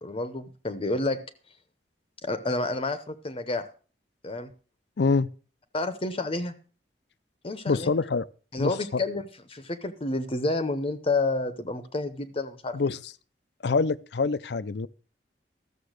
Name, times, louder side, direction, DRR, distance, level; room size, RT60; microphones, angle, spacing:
voice 1, 0.0-1.2 2.2-3.7 4.2-4.5 5.7-6.5 7.4-7.9 8.5-13.0, left 2 dB, 30° left, 0.8 m, -29 dB
voice 2, 5.0-5.3 7.7-8.2 8.6-8.7 12.7-13.0 13.6-14.9, left 4 dB, 70° left, 0.5 m, -25 dB
13.5 x 6.9 x 6.5 m
head